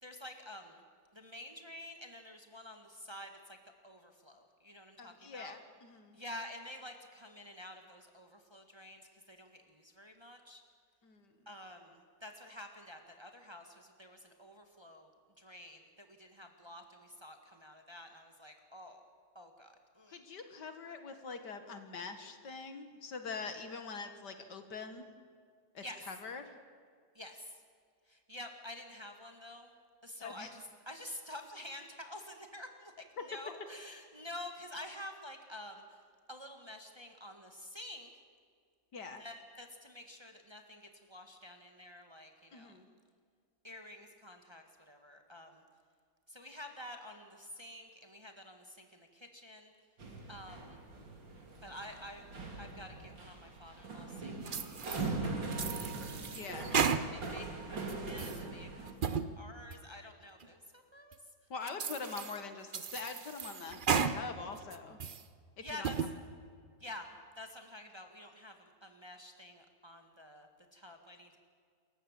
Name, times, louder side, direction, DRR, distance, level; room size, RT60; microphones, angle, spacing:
voice 1, 0.0-0.8 1.1-3.6 3.8-5.6 6.1-10.6 11.4-15.1 15.4-19.0 19.3-20.2 25.8-26.0 27.1-27.4 28.1-29.7 30.0-35.8 36.3-38.1 39.2-42.8 43.6-45.6 46.3-49.7 50.3-50.8 51.6-52.2 52.6-55.9 57.1-61.2 65.6-65.9 66.8-67.1 67.4-71.4, left 1 dB, 15° right, 4 dB, 1.8 m, -49 dB
voice 2, 5.0-6.2 11.0-11.3 20.1-25.1 25.7-26.5 30.2-30.5 33.2-33.3 38.9-39.3 42.5-42.9 56.3-56.7 61.5-65.0 65.6-65.9, left 4 dB, 70° left, 8 dB, 2.2 m, -44 dB
sound 1, 50.0-58.9, right 3 dB, 90° right, 3.7 m, -41 dB
sound 2, 54.5-55.1 55.5-57.4 57.8-58.4 58.9-59.3 59.7-59.8 60.4-60.5 61.1-61.2 61.7-62.4 62.7-64.2 64.6-65.2 65.7-66.1, right 6 dB, 40° right, 0.7 m, -34 dB
27.5 x 15.0 x 7.6 m, 2.1 s
omnidirectional pair, 2.0 m